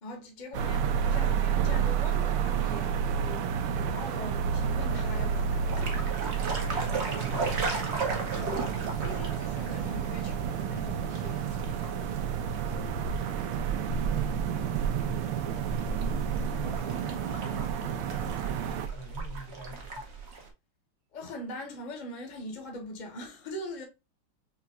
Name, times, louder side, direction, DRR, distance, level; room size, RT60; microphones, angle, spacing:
voice 1, 0.0-6.0 7.1-7.2 9.0-11.8 21.1-23.8, left 1 dB, 35° left, 0.8 m, -42 dB
sound 1, 0.5-18.9, right 8 dB, 80° right, 1.4 m, -30 dB
sound 2, 5.7-20.5, right 3 dB, 60° right, 0.7 m, -36 dB
voice 2, 6.2-8.4 12.6-13.4 16.3-20.2, right 2 dB, 40° right, 1.0 m, -48 dB
5.5 x 2.8 x 2.3 m
omnidirectional pair, 2.4 m